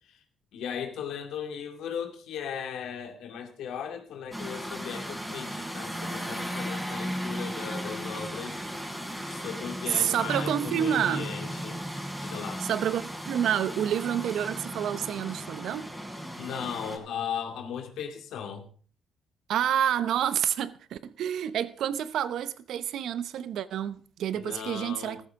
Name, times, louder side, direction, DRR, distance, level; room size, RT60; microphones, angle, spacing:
voice 1, 0.5-8.6 9.3-11.8 12.2-12.7 16.4-18.7 24.3-25.2, left 7 dB, 85° left, 2.3 m, -37 dB
sound 1, 4.3-17.0, equal, 5° right, 3.7 m, -36 dB
voice 2, 9.9-11.3 12.6-15.9 19.5-25.2, right 10 dB, 75° right, 0.8 m, -28 dB
14.0 x 14.0 x 3.7 m
cardioid pair, 80°, 0 cm